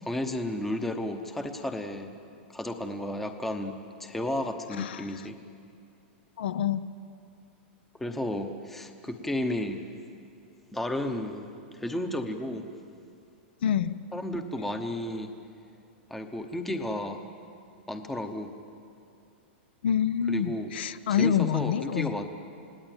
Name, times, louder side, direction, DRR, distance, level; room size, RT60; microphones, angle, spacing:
voice 1, 0.1-2.1 2.5-3.7 4.0-5.4 8.0-9.8 10.7-12.7 14.1-15.3 16.1-17.2 17.9-18.5 20.3-20.7 21.1-22.2, left 1 dB, 5° left, 6 dB, 1.0 m, -33 dB
voice 2, 6.4-6.8 13.6-14.0 19.8-22.2, left 8 dB, 65° left, 13 dB, 0.8 m, -27 dB
29.0 x 18.5 x 9.0 m, 2.5 s
supercardioid pair, 180°, 6 cm